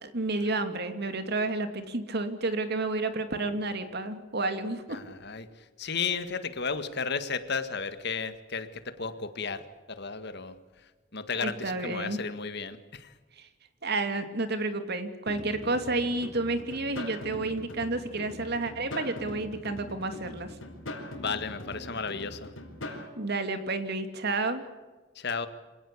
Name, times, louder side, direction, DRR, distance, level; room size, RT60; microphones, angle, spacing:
voice 1, 0.0-5.0 11.4-12.2 13.4-13.5 13.8-20.5 23.1-24.6, right 2 dB, 55° right, 8 dB, 2.6 m, -30 dB
voice 2, 4.9-10.6 11.1-13.1 21.2-22.5 25.2-25.5, left 5 dB, 60° left, 11 dB, 1.8 m, -34 dB
sound 1, 15.3-23.1, left 1 dB, 85° left, 5.4 m, -41 dB
26.5 x 18.0 x 8.5 m, 1.3 s
head